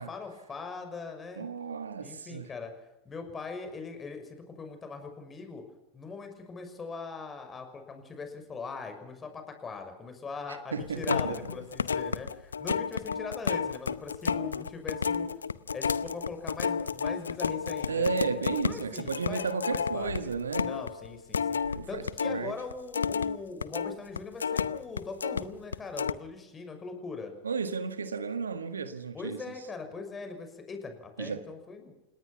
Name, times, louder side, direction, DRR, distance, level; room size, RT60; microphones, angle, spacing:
voice 1, 0.0-1.5 2.0-2.7 3.0-5.6 5.9-15.3 15.7-18.1 18.7-20.3 20.6-27.3 29.1-31.9, left 4 dB, 20° left, 6.0 m, -41 dB
voice 2, 1.4-2.5 10.7-11.5 17.9-20.7 21.7-22.5 27.4-29.4 31.2-31.5, right 5 dB, 80° right, 1.5 m, -33 dB
sound 1, 10.8-22.4 22.7-25.4 25.7-26.1, left 6 dB, 80° left, 0.7 m, -31 dB
29.5 x 18.5 x 5.9 m
figure-of-eight pair, 85°, 0 cm